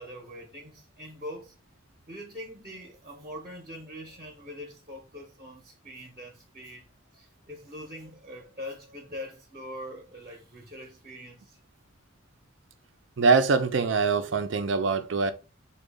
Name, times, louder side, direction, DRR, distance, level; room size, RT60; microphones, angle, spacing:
voice 1, 0.0-1.5 2.1-6.9 7.1-11.6, left 1 dB, 35° right, 0.8 m, -43 dB
voice 2, 13.2-15.3, right 4 dB, 65° right, 0.5 m, -23 dB
3.8 x 2.3 x 3.4 m
head